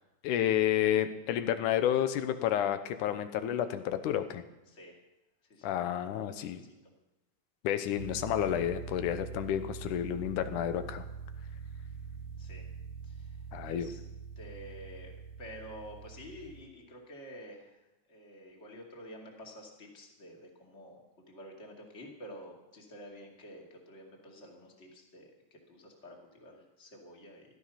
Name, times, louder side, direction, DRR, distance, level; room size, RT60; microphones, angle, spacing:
voice 1, 0.2-4.4 5.6-6.6 7.6-11.0 13.5-13.9, left 10 dB, 85° left, 10 dB, 2.4 m, -30 dB
voice 2, 6.4-6.7 12.4-12.6 13.0-13.4 13.6-14.0 14.4-17.8 18.1-21.0 21.3-27.4, equal, 25° left, 0 dB, 2.3 m, -49 dB
sound 1, 8.0-16.6, right 5 dB, 85° right, 2.4 m, -44 dB
16.0 x 12.5 x 5.7 m, 0.99 s
omnidirectional pair, 3.6 m